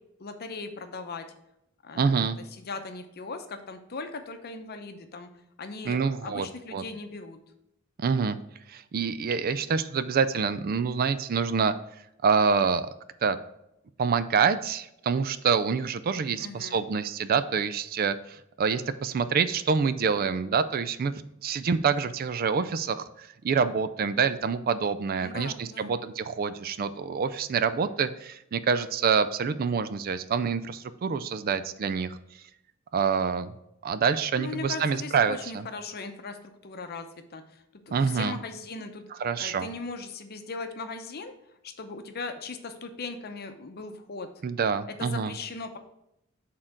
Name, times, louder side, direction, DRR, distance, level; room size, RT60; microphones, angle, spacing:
voice 1, 0.2-1.3 1.8-2.2 2.6-5.3 5.6-7.4 16.4-16.8 25.2-25.9 34.4-37.4 37.9-39.0 39.4-41.3 41.6-44.3 45.0-45.8, left 3 dB, 50° left, 7 dB, 0.7 m, -38 dB
voice 2, 1.9-2.4 5.8-6.8 8.0-8.4 8.7-11.7 12.2-12.9 13.2-13.4 14.0-21.1 21.4-32.2 32.9-33.5 33.8-35.7 37.9-38.4 39.1-39.7 44.4-45.3, right 6 dB, 45° right, 13 dB, 0.4 m, -26 dB
6.5 x 3.8 x 5.8 m, 0.83 s
head